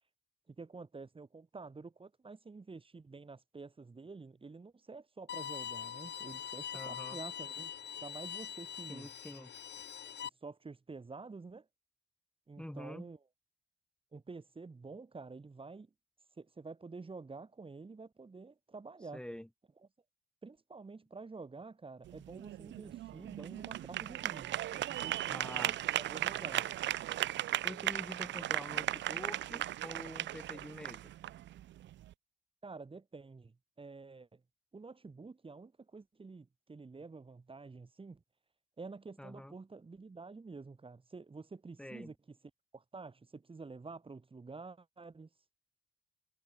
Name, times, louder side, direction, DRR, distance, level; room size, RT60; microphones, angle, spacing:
voice 1, 0.5-7.7 8.0-9.1 10.2-11.7 12.5-13.2 14.1-15.9 16.4-19.2 20.4-25.7 25.9-26.7 32.6-34.4 34.7-38.2 38.8-42.4 42.7-45.3, right 4 dB, 25° right, 5.3 m, -49 dB
Bowed string instrument, 5.3-10.3, left 9 dB, 60° left, 5.2 m, -43 dB
voice 2, 6.7-7.2 8.9-9.5 12.6-13.1 19.1-19.5 25.3-25.8 27.6-31.1 39.2-39.5 41.8-42.1, left 1 dB, 5° left, 7.4 m, -46 dB
sound 1, 22.0-32.1, right 13 dB, 65° right, 0.6 m, -37 dB
cardioid pair, 90°, 20 cm